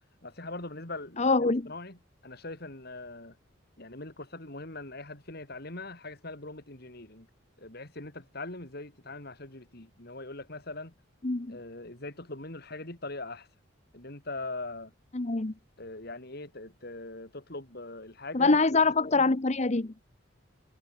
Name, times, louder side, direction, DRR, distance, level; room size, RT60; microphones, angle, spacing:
voice 1, 0.2-3.4 3.8-7.3 7.6-10.9 11.5-13.5 13.9-14.9 15.8-19.3, left 2 dB, 50° left, 3.4 m, -41 dB
voice 2, 1.2-1.6 11.2-11.6 15.1-15.5 18.3-19.9, left 3 dB, 35° left, 0.9 m, -24 dB
head